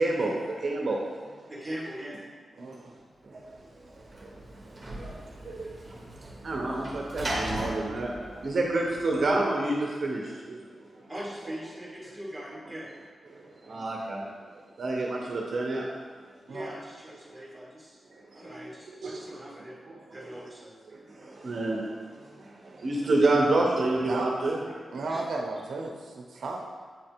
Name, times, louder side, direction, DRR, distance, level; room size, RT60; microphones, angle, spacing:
voice 1, 0.0-1.5 2.6-2.8 3.2-6.2 6.4-11.1 13.3-16.1 17.3-17.4 18.1-18.4 19.0-19.4 19.9-20.5 20.9-24.9, right 2 dB, 45° right, -2 dB, 0.7 m, -30 dB
voice 2, 1.5-2.2 6.7-6.8 11.1-12.9 16.5-18.0 18.3-19.8 20.1-20.7 24.9-25.2, equal, ahead, -7 dB, 1.7 m, -41 dB
voice 3, 2.6-2.9 16.5-16.7 19.0-19.2 24.0-24.3 24.9-26.7, right 3 dB, 75° right, 1 dB, 0.7 m, -35 dB
Sliding door / Slam, 3.5-9.3, right 1 dB, 25° right, 1.1 m, -38 dB
8.2 x 3.3 x 4.4 m, 1.5 s
wide cardioid pair, 170°, 0 cm